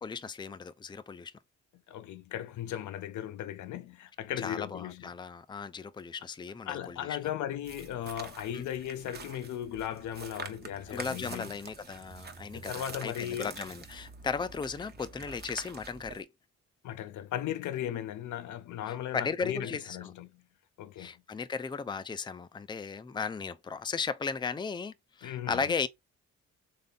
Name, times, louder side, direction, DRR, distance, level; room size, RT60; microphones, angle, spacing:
voice 1, 0.0-1.3 4.4-7.2 8.5-8.6 10.9-16.3 18.9-20.1 21.0-25.9, left 5 dB, 15° left, 0.5 m, -36 dB
voice 2, 1.9-5.1 6.7-11.5 12.5-13.5 16.8-20.4 20.8-21.1 25.2-25.7, left 11 dB, 75° left, 0.6 m, -37 dB
sound 1, 7.6-16.2, right 5 dB, 35° right, 0.8 m, -46 dB
3.7 x 3.3 x 3.9 m
cardioid pair, 90°, 30 cm